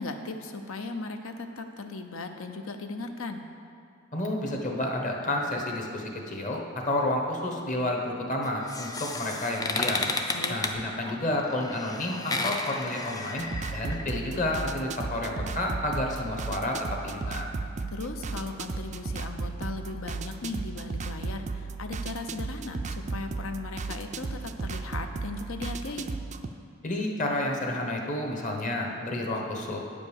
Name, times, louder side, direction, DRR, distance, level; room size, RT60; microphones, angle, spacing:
voice 1, 0.0-3.4 10.3-10.6 17.9-26.1, left 3 dB, 70° left, 6 dB, 0.7 m, -37 dB
voice 2, 4.1-10.1 10.5-17.5 26.8-29.8, left 1 dB, 40° left, 1 dB, 1.1 m, -30 dB
sound 1, 8.4-14.0, left 3 dB, 20° left, 0.5 m, -33 dB
sound 2, 13.4-26.5, right 4 dB, 35° right, 0.4 m, -35 dB
9.3 x 5.1 x 7.0 m, 2.4 s
head